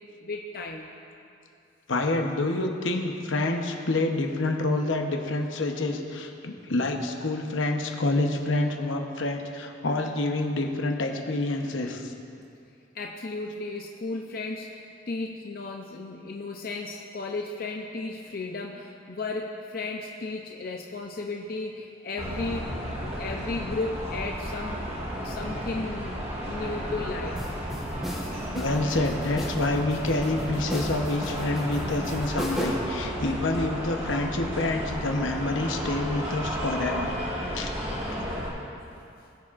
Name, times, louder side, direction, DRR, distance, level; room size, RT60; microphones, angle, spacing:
voice 1, 0.2-0.9 12.9-27.4 38.2-38.4 38.8-39.0, left 3 dB, 50° left, 1 dB, 0.6 m, -35 dB
voice 2, 1.9-12.1 28.5-37.2 37.5-37.7 38.1-38.2, left 2 dB, 80° left, 3 dB, 0.9 m, -27 dB
sound 1, 22.2-38.5, equal, 30° right, 1.7 m, -33 dB
sound 2, 27.4-33.0, equal, ahead, 1.1 m, -35 dB
20.0 x 7.2 x 2.5 m, 2.5 s
head